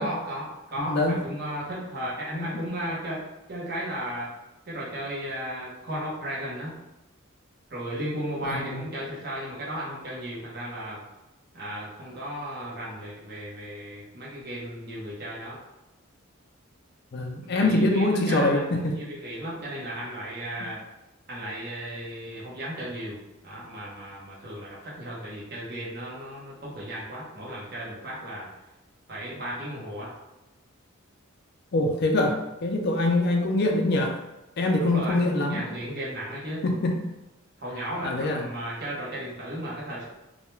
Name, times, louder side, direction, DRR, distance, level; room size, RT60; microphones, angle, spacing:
voice 1, 0.0-4.3 4.7-6.8 7.7-11.0 11.5-15.6 17.5-20.8 21.3-28.5 29.1-30.1 34.8-36.7 37.6-40.1, equal, 50° right, -6 dB, 0.8 m, -35 dB
voice 2, 8.4-8.8 17.1-18.9 31.7-34.2 34.6-35.7 36.6-37.0 38.0-38.4, left 2 dB, 50° left, 2 dB, 0.4 m, -24 dB
2.3 x 2.1 x 3.0 m, 0.99 s
head